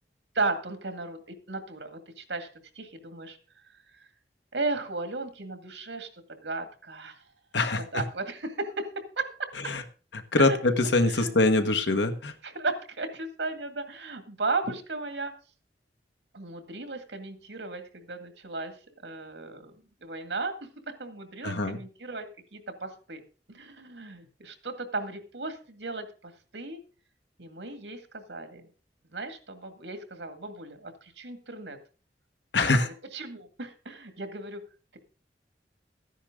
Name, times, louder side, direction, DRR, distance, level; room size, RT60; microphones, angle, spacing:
voice 1, 0.3-1.2 1.5-2.5 2.8-3.4 4.5-7.1 7.9-8.9 9.2-9.5 10.4-11.3 12.4-15.3 16.3-18.7 19.0-20.5 21.0-23.2 23.5-26.8 27.4-28.7 29.1-31.8 32.6-32.8 33.1-34.6, right 3 dB, 90° right, 7 dB, 2.2 m, -35 dB
voice 2, 7.5-8.0 9.7-9.8 10.1-12.3 21.4-21.8 32.5-32.9, left 2 dB, 85° left, 7 dB, 1.5 m, -24 dB
13.5 x 10.0 x 3.8 m, 0.36 s
head